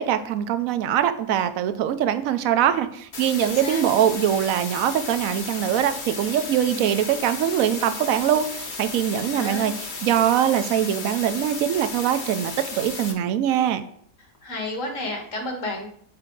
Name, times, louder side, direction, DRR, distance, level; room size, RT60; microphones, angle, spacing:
voice 1, 0.0-13.8, right 10 dB, 75° right, 10 dB, 1.0 m, -23 dB
sound 1, 3.1-13.1, left 3 dB, 40° left, 0.9 m, -34 dB
voice 2, 3.4-3.9 6.7-7.0 9.1-9.7 14.4-15.9, left 1 dB, 65° left, 1 dB, 1.8 m, -32 dB
7.4 x 4.4 x 3.8 m, 0.63 s
omnidirectional pair, 1.5 m